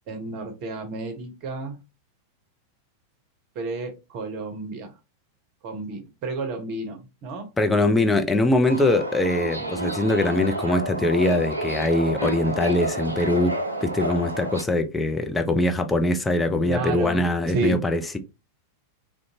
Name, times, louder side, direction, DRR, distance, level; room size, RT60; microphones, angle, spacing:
voice 1, 0.1-1.7 3.5-4.9 5.6-7.5 16.7-17.2 17.5-17.8, right 3 dB, 40° right, 0.8 m, -31 dB
voice 2, 7.6-13.5 13.8-18.2, left 2 dB, 10° left, 0.5 m, -22 dB
Subway metro underground, 8.7-14.6, right 1 dB, 85° right, 0.4 m, -30 dB
2.5 x 2.2 x 2.7 m
figure-of-eight pair, 90°, 0 cm